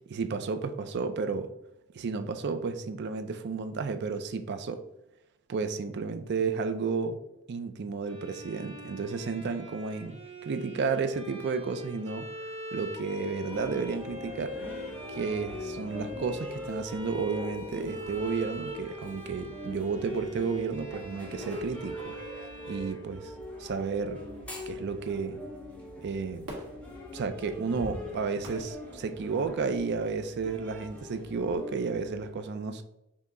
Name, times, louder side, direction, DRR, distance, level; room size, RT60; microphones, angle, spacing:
voice 1, 0.1-1.5 1.9-4.8 5.5-7.2 7.5-12.3 12.7-14.5 15.1-22.2 22.6-23.3 23.6-24.2 24.7-25.4 26.0-26.6 27.1-32.8, right 4 dB, 50° right, 9 dB, 0.4 m, -32 dB
Bowed string instrument, 8.0-23.8, equal, 30° right, 0.9 m, -44 dB
sound 1, 13.5-32.3, left 1 dB, 5° left, 0.7 m, -42 dB
Fireworks, 26.4-29.8 30.3-30.4, equal, 75° right, 1.3 m, -47 dB
5.6 x 2.0 x 3.6 m, 0.87 s
head